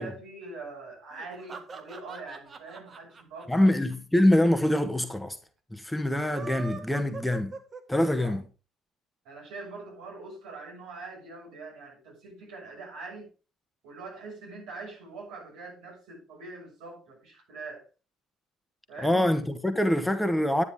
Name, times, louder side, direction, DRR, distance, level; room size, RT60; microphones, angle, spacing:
voice 1, 0.0-3.7 7.9-8.4 9.2-13.3 13.8-17.9 18.9-19.3, right 3 dB, 70° right, 6.5 m, -43 dB
sound 1, 1.1-4.5 4.8-4.9 5.1-5.2 6.1-8.3, right 4 dB, 35° right, 1.9 m, -42 dB
voice 2, 3.5-5.4 5.7-7.5 7.9-8.4 19.0-20.6, left 1 dB, 5° left, 1.4 m, -24 dB
10.5 x 9.7 x 3.7 m
hypercardioid pair, 55°, 0 cm